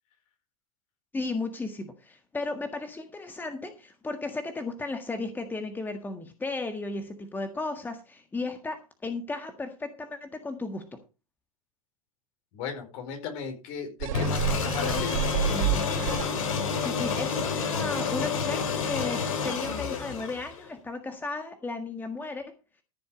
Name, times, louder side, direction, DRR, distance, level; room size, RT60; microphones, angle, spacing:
voice 1, 1.1-11.0 16.8-22.5, left 3 dB, 10° left, 7 dB, 1.7 m, -35 dB
voice 2, 12.5-15.3, left 6 dB, 50° left, 5 dB, 4.7 m, -36 dB
sound 1, 14.0-16.7 17.2-17.3, right 9 dB, 60° right, 4.1 m, -30 dB
sound 2, 14.1-20.7, left 5 dB, 70° left, 3.8 m, -29 dB
14.5 x 7.0 x 5.2 m, 0.30 s
hypercardioid pair, 105°, 18 cm